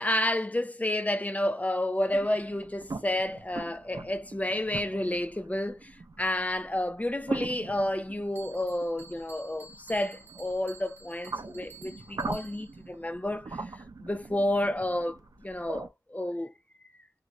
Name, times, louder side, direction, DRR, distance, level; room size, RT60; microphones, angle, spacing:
voice 1, 0.0-5.9 6.2-13.6 14.0-16.5, left 1 dB, 20° left, 0.5 m, -30 dB
sound 1, 2.1-15.9, right 3 dB, 65° right, 0.5 m, -42 dB
Bell, 8.3-12.9, right 3 dB, 30° right, 1.1 m, -52 dB
2.5 x 2.5 x 2.9 m
wide cardioid pair, 50°, 7 cm